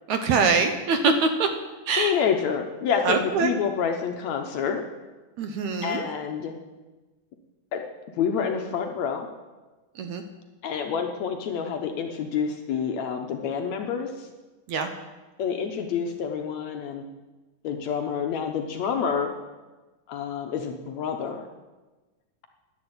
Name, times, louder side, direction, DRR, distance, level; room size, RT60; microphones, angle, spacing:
voice 1, 0.1-1.5 1.9-2.1 3.0-3.5 5.4-6.0 10.0-10.2 14.7-14.9, right 4 dB, 70° right, 7 dB, 2.0 m, -23 dB
voice 2, 1.9-4.8 5.8-6.6 7.7-7.8 8.2-9.3 10.6-14.3 15.4-17.0 17.6-19.4 20.1-21.5, left 7 dB, 70° left, 4 dB, 1.9 m, -28 dB
11.0 x 10.5 x 8.0 m, 1.2 s
omnidirectional pair, 3.8 m